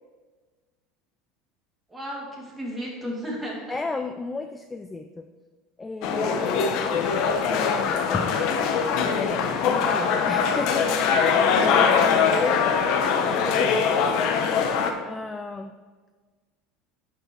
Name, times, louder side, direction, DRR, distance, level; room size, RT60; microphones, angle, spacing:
voice 1, 1.9-3.8, equal, 5° right, -4 dB, 2.5 m, -34 dB
voice 2, 3.7-5.3 5.8-7.1 7.4-8.3 9.0-11.0 11.4-15.7, left 3 dB, 10° left, 6 dB, 0.4 m, -33 dB
sound 1, 6.0-14.9, left 6 dB, 55° left, 1.0 m, -22 dB
11.0 x 5.4 x 4.7 m, 1.4 s
supercardioid pair, 145°, 0 cm